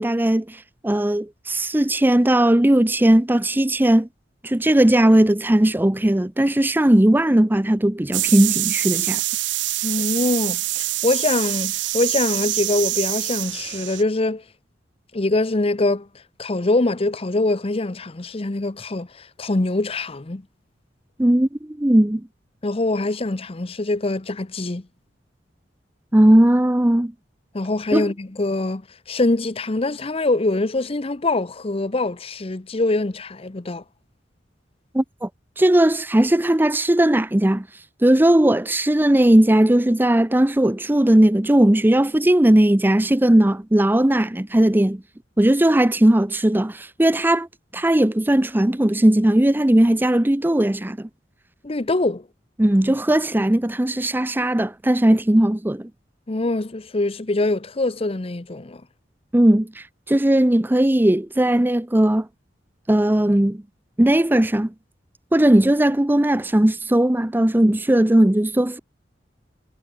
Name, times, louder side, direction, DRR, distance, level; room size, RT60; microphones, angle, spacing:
voice 1, 0.0-4.1 4.4-9.2 21.2-22.2 26.1-27.1 27.9-28.1 34.9-35.3 35.6-37.7 38.0-45.0 45.4-47.5 47.7-51.1 52.6-55.9 59.3-62.3 62.9-63.6 64.0-64.7 65.3-68.8, right 1 dB, 10° right, 0.6 m, -18 dB
sound 1, 8.1-14.0, right 16 dB, 75° right, 0.7 m, -25 dB
voice 2, 9.8-14.4 15.1-16.1 16.4-20.4 22.6-24.9 27.5-28.8 29.1-33.8 51.6-52.3 56.3-58.8, left 2 dB, 30° left, 0.8 m, -23 dB
head